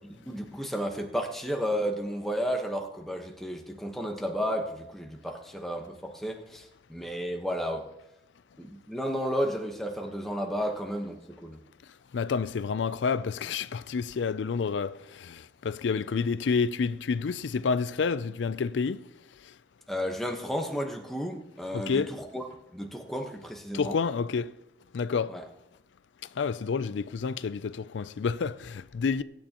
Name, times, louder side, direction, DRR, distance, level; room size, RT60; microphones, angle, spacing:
voice 1, 0.3-7.9 8.6-11.6 19.9-22.4 22.7-24.0 25.3-25.4, equal, ahead, 1.1 m, -32 dB
voice 2, 12.1-19.1 19.4-19.5 21.7-22.1 23.7-24.5 24.9-25.4 26.3-29.2, left 5 dB, 85° left, 0.4 m, -29 dB
22.5 x 9.1 x 3.0 m
head